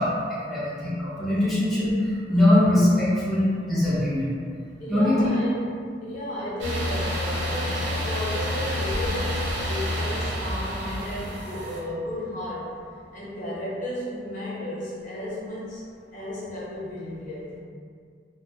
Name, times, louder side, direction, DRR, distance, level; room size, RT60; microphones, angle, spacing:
voice 1, 0.0-4.3 4.9-5.3, left 1 dB, ahead, -13 dB, 0.6 m, -22 dB
voice 2, 4.8-5.6 6.0-12.8 13.1-15.9 16.1-17.6, left 1 dB, 45° left, -9 dB, 0.8 m, -33 dB
sound 1, 6.6-11.8, equal, 75° right, 0.5 m, -28 dB
2.4 x 2.1 x 2.7 m, 2.2 s
head